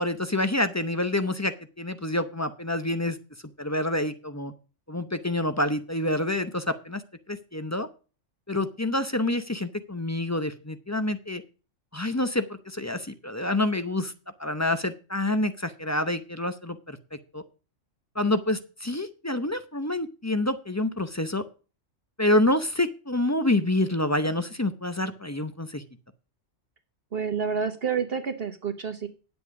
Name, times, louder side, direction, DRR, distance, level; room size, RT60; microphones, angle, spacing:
voice 1, 0.0-3.2 3.6-4.5 4.9-7.0 7.3-7.9 8.5-11.4 11.9-14.1 14.4-17.4 18.1-21.4 22.2-25.8, left 1 dB, 15° left, 10 dB, 0.6 m, -27 dB
voice 2, 27.1-29.1, right 6 dB, 50° right, 8 dB, 1.1 m, -29 dB
9.9 x 8.0 x 4.8 m, 0.35 s
omnidirectional pair, 1.3 m